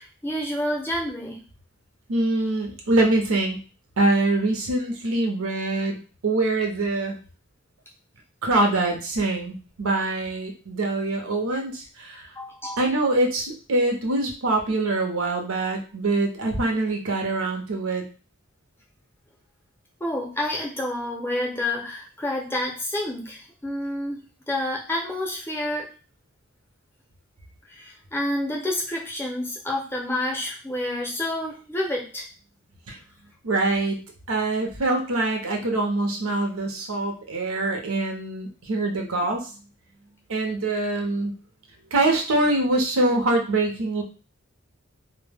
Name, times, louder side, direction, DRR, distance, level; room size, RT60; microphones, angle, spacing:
voice 1, 0.0-1.4 12.4-12.8 20.0-25.9 27.7-32.3, left 1 dB, 10° left, -2 dB, 0.5 m, -29 dB
voice 2, 2.1-3.6 4.0-7.2 8.4-12.3 12.8-18.0 32.9-33.0 33.4-34.0 34.3-39.5 40.3-41.3 41.9-44.0, right 2 dB, 85° right, 2 dB, 0.6 m, -24 dB
2.1 x 2.1 x 3.3 m, 0.35 s
head